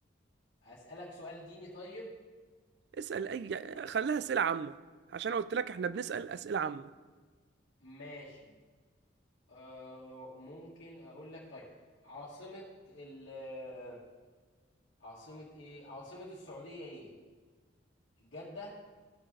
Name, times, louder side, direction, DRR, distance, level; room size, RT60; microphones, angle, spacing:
voice 1, 0.6-2.1 7.8-8.5 9.5-11.7 12.0-14.0 15.0-17.1 18.2-18.8, left 1 dB, 70° left, 1.8 m, -47 dB
voice 2, 3.0-4.7 5.1-6.9, right 6 dB, 60° right, 0.3 m, -33 dB
15.5 x 6.2 x 3.2 m
head